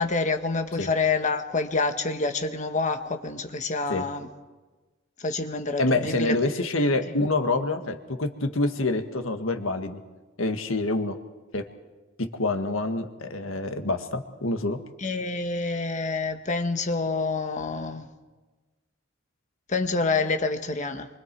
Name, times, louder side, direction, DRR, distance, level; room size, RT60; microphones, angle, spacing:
voice 1, 0.0-4.3 5.2-6.9 15.0-18.1 19.7-21.1, left 3 dB, 40° left, 7 dB, 1.4 m, -27 dB
voice 2, 5.8-10.0 10.4-11.2 11.5-11.7 12.2-14.8, left 2 dB, 85° left, 7 dB, 1.7 m, -26 dB
27.0 x 24.5 x 4.7 m, 1.3 s
head